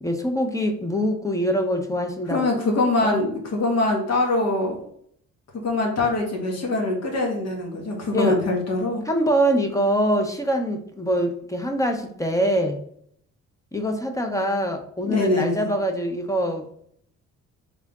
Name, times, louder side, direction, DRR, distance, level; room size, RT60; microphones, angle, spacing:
voice 1, 0.0-2.4 3.0-3.2 8.1-8.4 9.1-12.8 13.7-16.6, equal, 10° left, 4 dB, 0.8 m, -24 dB
voice 2, 2.3-4.8 5.6-9.0 15.0-15.7, left 2 dB, 55° left, 1 dB, 1.6 m, -23 dB
3.7 x 3.5 x 3.5 m, 0.65 s
cardioid pair, 90°, 30 cm